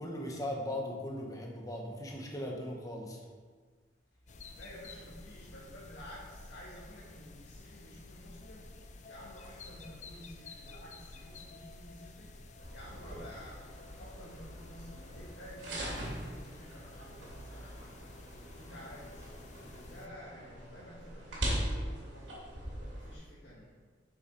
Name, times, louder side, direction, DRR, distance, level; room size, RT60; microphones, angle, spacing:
voice 1, 0.0-3.2, left 1 dB, 20° left, -1 dB, 1.2 m, -38 dB
voice 2, 4.1-23.8, equal, 75° left, -8 dB, 1.8 m, -52 dB
sound 1, 4.3-20.1, left 2 dB, 40° left, 0.6 m, -51 dB
sound 2, 10.7-18.7, right 1 dB, 60° right, 1.1 m, -60 dB
sound 3, 12.6-23.1, right 1 dB, 85° right, 2.8 m, -41 dB
7.2 x 6.4 x 5.4 m, 1.5 s
head